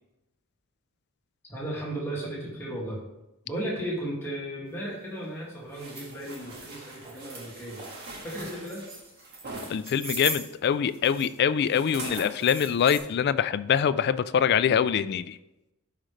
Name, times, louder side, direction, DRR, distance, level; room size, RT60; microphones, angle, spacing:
voice 1, 1.5-3.0 3.4-8.9, right 1 dB, 10° left, -5 dB, 2.1 m, -35 dB
sound 1, 5.2-5.3 5.8-5.9 6.4-6.6 7.1-7.2 7.5-8.0 8.5-9.2 9.5-11.4 11.7-13.0, right 2 dB, 25° right, 1.9 m, -39 dB
sound 2, 5.7-9.7 11.7-12.3 12.9-13.0, right 2 dB, 50° right, 1.8 m, -42 dB
voice 2, 9.7-15.4, left 8 dB, 50° left, 14 dB, 0.3 m, -24 dB
11.5 x 5.0 x 3.2 m, 0.94 s
head